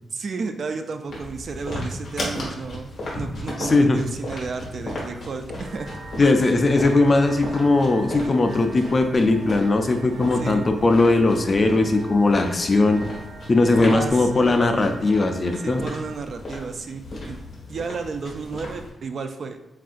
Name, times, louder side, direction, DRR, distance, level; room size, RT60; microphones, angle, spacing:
voice 1, 0.1-5.9 6.4-6.5 10.4-10.6 13.7-14.3 15.6-17.4 17.7-19.6, right 4 dB, 45° right, 7 dB, 0.3 m, -32 dB
sound 1, 1.1-18.9, left 1 dB, 45° left, 1.5 m, -36 dB
voice 2, 3.6-4.0 6.2-13.0 13.5-15.8, left 2 dB, 30° left, 6 dB, 0.4 m, -19 dB
sound 2, 5.6-16.2, right 3 dB, 75° right, 0.7 m, -43 dB
7.3 x 2.5 x 2.5 m, 1.0 s
wide cardioid pair, 165°, 0 cm